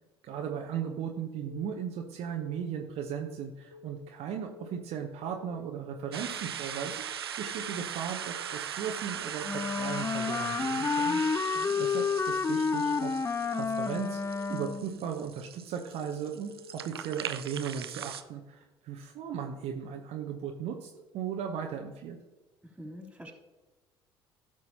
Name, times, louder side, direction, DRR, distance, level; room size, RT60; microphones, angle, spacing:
voice 1, 0.2-6.9 7.4-11.2 11.8-22.2, right 8 dB, 55° right, 2 dB, 0.9 m, -37 dB
Keyboard (musical) / Alarm, 1.5-1.8 2.2-2.6 3.0-3.3 3.7-4.1 4.5-4.8 5.2-5.6 6.0-6.3 6.7-7.1 7.5-7.8 8.2-8.6 9.0-9.4 9.7-10.1 10.5-10.9 11.2-11.6 12.0-12.4 12.7-13.1 13.5-13.9 14.2-14.6 15.0-15.4 15.7-16.1 16.5-16.9 17.2-17.6, left 7 dB, 85° left, 0.6 m, -51 dB
sound 1, 6.1-18.2, right 9 dB, 85° right, 0.4 m, -40 dB
Wind instrument woodwind instrument, 9.4-15.0, left 5 dB, 20° left, 0.5 m, -30 dB
voice 2, 11.4-11.9 22.6-23.3, equal, 10° right, 1 dB, 3.2 m, -46 dB
16.0 x 6.1 x 2.9 m, 1.2 s
figure-of-eight pair, 55°, 13 cm